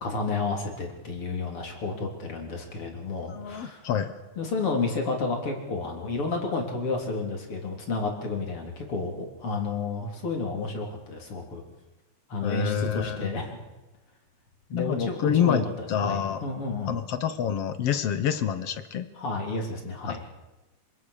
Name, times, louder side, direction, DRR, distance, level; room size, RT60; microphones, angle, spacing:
voice 1, 0.0-3.8 4.4-11.6 12.3-13.6 14.7-15.6 16.0-17.0 19.2-20.2, left 3 dB, 40° left, 2 dB, 4.3 m, -31 dB
voice 2, 3.3-4.2 12.4-13.3 14.7-16.4 16.9-19.1 20.1-20.2, left 8 dB, 60° left, 11 dB, 1.7 m, -27 dB
26.0 x 25.0 x 6.7 m, 1.0 s
omnidirectional pair, 3.8 m